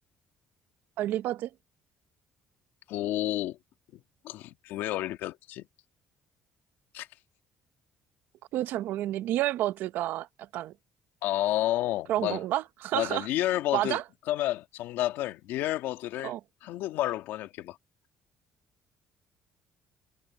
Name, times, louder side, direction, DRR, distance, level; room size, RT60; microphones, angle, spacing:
voice 1, 1.0-1.5 8.5-10.7 12.1-13.3 13.7-14.0 16.2-16.4, right 14 dB, 65° right, 0.7 m, -30 dB
voice 2, 2.9-3.6 3.9-5.7 6.9-7.1 11.2-12.4 12.9-14.0 14.3-16.3 16.6-17.8, left 14 dB, 80° left, 1.8 m, -30 dB
cardioid pair, 160°, 4 cm